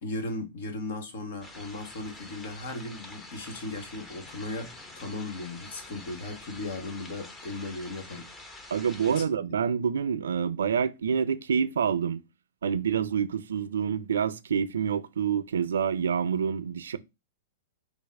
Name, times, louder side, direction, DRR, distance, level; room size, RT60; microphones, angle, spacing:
voice 1, 0.0-8.3 9.1-9.4, left 2 dB, 65° left, 1.3 m, -37 dB
sound 1, 1.4-9.2, left 2 dB, 15° left, 0.8 m, -46 dB
voice 2, 8.7-12.2 12.6-17.0, right 7 dB, 80° right, 0.5 m, -27 dB
5.2 x 2.1 x 4.6 m
hypercardioid pair, 120°, 0 cm